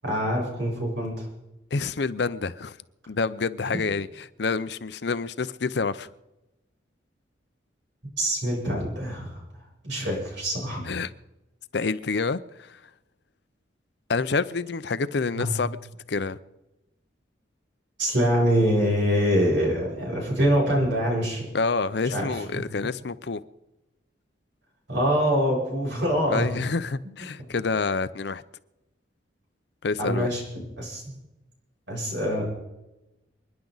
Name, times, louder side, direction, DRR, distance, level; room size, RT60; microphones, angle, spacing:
voice 1, 0.0-1.3 8.2-9.4 9.8-10.8 15.4-15.5 18.0-21.4 22.1-22.3 24.9-26.5 30.0-30.4 30.8-31.2 31.9-32.4, equal, 70° right, 7.4 m, -24 dB
voice 2, 1.7-2.8 3.1-6.1 10.8-11.1 11.7-12.8 14.1-15.8 16.1-16.4 21.5-23.4 26.3-28.4 29.8-30.3, left 4 dB, 60° left, 0.6 m, -28 dB
28.5 x 10.5 x 4.0 m
head